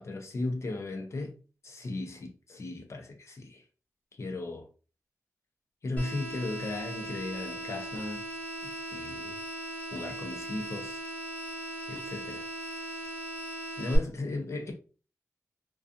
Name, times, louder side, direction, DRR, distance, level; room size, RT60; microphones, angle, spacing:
voice 1, 0.0-1.4 1.6-3.6 4.2-4.7 5.8-8.2 8.6-9.4 9.9-11.0 11.9-12.5 13.8-14.7, left 2 dB, 55° left, 0.6 m, -36 dB
sound 1, 6.0-14.0, right 1 dB, 25° left, 1.0 m, -38 dB
2.5 x 2.3 x 2.5 m
wide cardioid pair, 90°, 6 cm